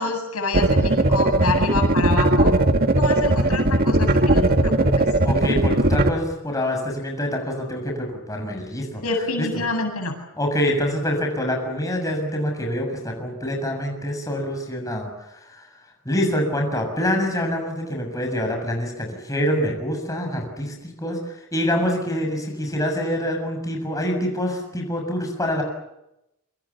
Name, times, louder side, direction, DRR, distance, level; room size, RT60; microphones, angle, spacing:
voice 1, 0.0-2.5 3.0-5.1 9.0-10.2, left 3 dB, 75° left, 4 dB, 8.0 m, -27 dB
sound 1, 0.5-6.1, right 1 dB, 45° right, 2.0 m, -18 dB
voice 2, 5.2-9.0 9.4-9.5 10.4-15.1 15.5-15.6 16.1-21.2 21.5-25.6, equal, 15° left, 2 dB, 7.0 m, -25 dB
27.5 x 26.0 x 7.2 m, 0.86 s
head